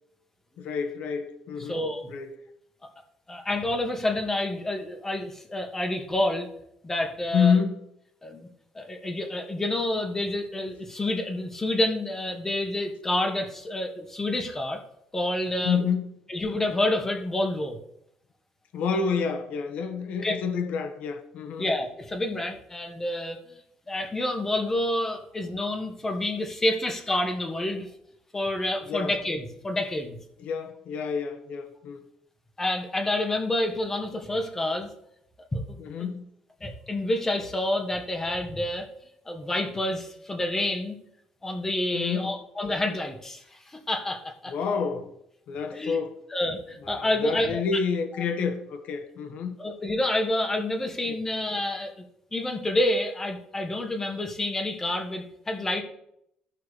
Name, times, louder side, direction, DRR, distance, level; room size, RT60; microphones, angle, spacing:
voice 1, 0.6-1.8 2.1-2.4 7.3-7.7 15.6-16.1 18.7-21.7 28.9-29.2 30.4-32.0 35.8-36.3 41.9-42.3 44.5-45.1 45.5-46.2 46.8-49.6 51.0-51.1, left 6 dB, 70° left, 1.2 m, -28 dB
voice 2, 1.7-2.0 3.3-6.5 6.8-7.6 8.2-8.5 8.7-14.8 15.1-15.8 16.3-17.8 20.2-20.4 21.6-23.6 23.9-27.9 28.3-30.2 32.6-34.9 35.5-35.6 36.0-36.1 36.6-38.9 39.3-41.0 41.4-44.5 45.7-46.0 46.3-47.6 49.6-52.0 52.3-55.8, left 1 dB, 15° left, 1.5 m, -28 dB
15.0 x 5.7 x 3.3 m
cardioid pair, 120°, 2 cm